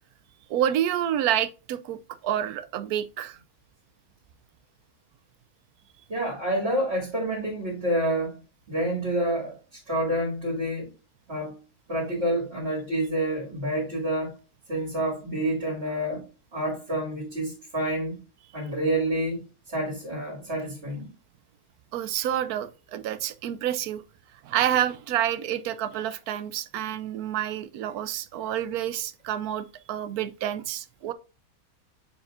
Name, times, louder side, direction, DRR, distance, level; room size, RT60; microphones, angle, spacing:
voice 1, 0.5-3.4 21.9-24.0 24.4-31.1, right 11 dB, 90° right, 1.1 m, -28 dB
voice 2, 6.1-8.4 8.7-10.9 11.3-11.5 11.9-14.4 14.7-16.2 16.5-18.2 18.5-21.1, right 1 dB, 45° right, 2.3 m, -28 dB
7.0 x 5.7 x 2.5 m
omnidirectional pair, 1.6 m